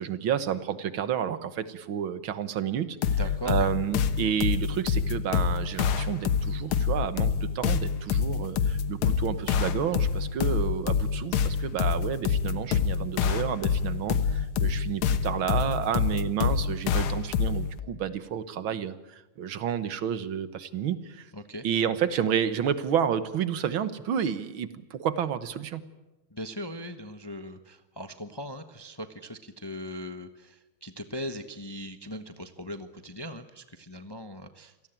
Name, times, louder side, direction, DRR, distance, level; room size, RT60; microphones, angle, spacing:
voice 1, 0.0-3.2 3.5-21.3 21.6-25.8, right 8 dB, 75° right, 13 dB, 2.0 m, -30 dB
sound 1, 3.0-17.8, left 6 dB, 85° left, 2.0 m, -27 dB
voice 2, 3.2-3.7 21.3-21.6 26.3-34.7, equal, 15° left, 9 dB, 0.8 m, -39 dB
27.0 x 18.0 x 9.1 m, 0.98 s
omnidirectional pair, 2.3 m